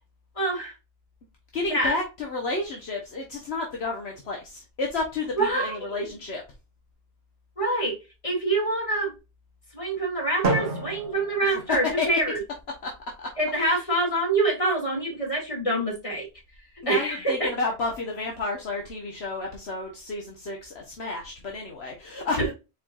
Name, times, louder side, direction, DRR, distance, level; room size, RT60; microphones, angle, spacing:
voice 1, 0.4-0.7 1.7-2.0 5.4-6.1 7.6-8.0 8.2-9.1 9.7-12.4 13.4-16.3 16.9-17.5 22.4-22.5, right 2 dB, 30° left, -2 dB, 2.5 m, -26 dB
voice 2, 1.5-6.4 12.0-12.1 12.8-12.9 13.2-13.3 13.7-13.8 16.8-22.4, left 3 dB, 65° left, 0 dB, 1.3 m, -31 dB
Drum, 10.4-12.4, right 3 dB, 55° right, 1.3 m, -30 dB
4.5 x 4.4 x 2.4 m, 0.27 s
omnidirectional pair, 1.2 m